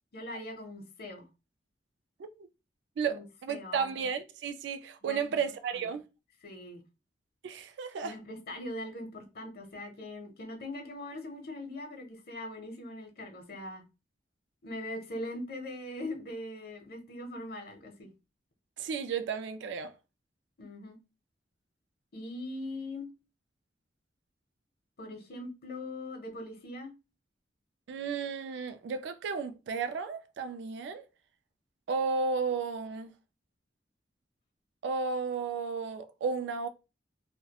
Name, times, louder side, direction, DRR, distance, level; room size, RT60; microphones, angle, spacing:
voice 1, 0.1-1.3 3.1-4.1 5.0-5.4 5.7-5.9 6.4-6.8 8.0-13.8 14.6-18.1 20.6-21.0 22.1-23.1 25.0-26.9, left 1 dB, 60° left, 0.6 m, -41 dB
voice 2, 3.0-6.0 7.4-8.2 18.8-19.9 27.9-31.0 31.9-33.1 34.8-36.7, right 5 dB, 75° right, 0.3 m, -33 dB
2.3 x 2.1 x 2.7 m
head